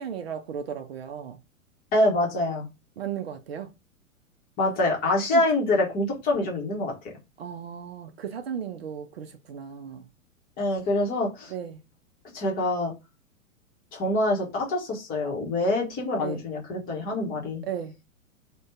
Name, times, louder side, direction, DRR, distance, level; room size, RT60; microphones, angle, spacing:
voice 1, 0.0-1.4 3.0-3.7 5.3-5.4 7.4-10.1 11.5-11.8 16.2-16.4 17.6-17.9, right 8 dB, 50° right, 0.4 m, -35 dB
voice 2, 1.9-2.7 4.6-6.9 10.6-11.5 12.3-12.9 13.9-17.6, left 2 dB, 20° left, 0.9 m, -25 dB
2.5 x 2.2 x 3.4 m
figure-of-eight pair, 105°, 42 cm